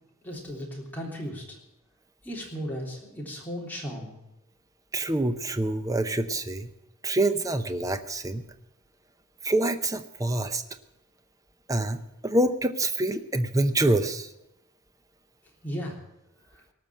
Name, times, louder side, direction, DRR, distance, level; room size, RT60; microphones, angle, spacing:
voice 1, 0.2-1.6 2.2-4.2 15.6-16.0, equal, 10° left, -3 dB, 3.4 m, -35 dB
voice 2, 4.9-6.7 7.0-8.4 9.4-10.6 11.7-14.3, right 2 dB, 15° right, 10 dB, 0.7 m, -26 dB
18.5 x 6.1 x 9.9 m, 0.89 s
head